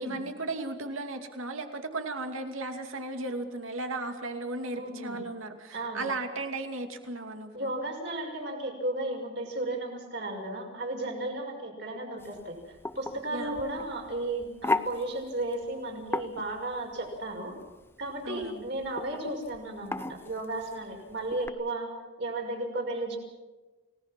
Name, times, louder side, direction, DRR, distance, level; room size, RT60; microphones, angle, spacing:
voice 1, 0.0-7.7 13.3-13.6 18.2-18.7, right 2 dB, 85° right, 5 dB, 2.6 m, -36 dB
voice 2, 4.7-5.2 5.7-6.1 7.5-17.6 18.0-21.9 22.2-23.2, right 2 dB, 55° right, 1 dB, 6.0 m, -34 dB
sound 1, 12.2-21.5, left 2 dB, 10° left, 0.6 m, -37 dB
29.5 x 18.5 x 6.1 m, 1.2 s
head